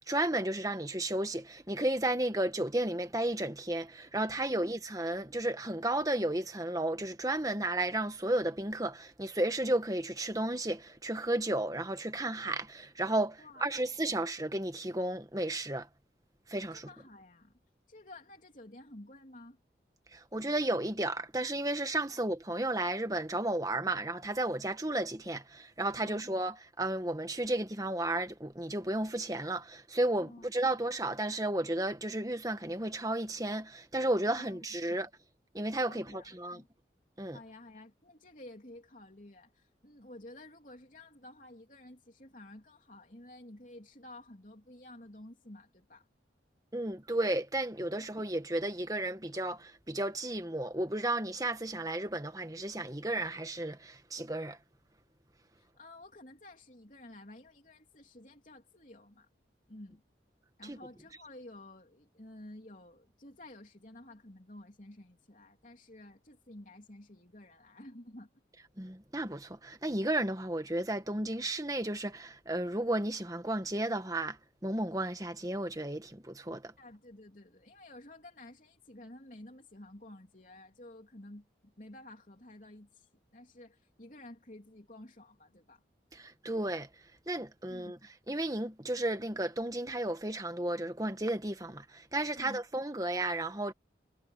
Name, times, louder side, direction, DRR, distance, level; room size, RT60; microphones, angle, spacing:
voice 1, 0.1-15.9 16.5-16.9 20.1-35.1 35.5-36.6 37.2-37.4 46.7-54.6 60.7-60.8 68.8-74.4 74.6-76.7 86.1-86.9 87.3-88.0 88.3-93.7, right 1 dB, 20° right, 1.7 m, -33 dB
voice 2, 13.4-13.8 16.7-17.5 17.9-19.6 22.1-22.2 26.0-26.3 30.2-30.5 34.2-34.6 34.9-35.0 35.8-36.7 37.3-46.1 55.6-59.3 59.7-60.0 60.6-68.3 76.8-85.8 87.7-88.0 92.4-92.6, left 1 dB, 45° left, 3.4 m, -52 dB
head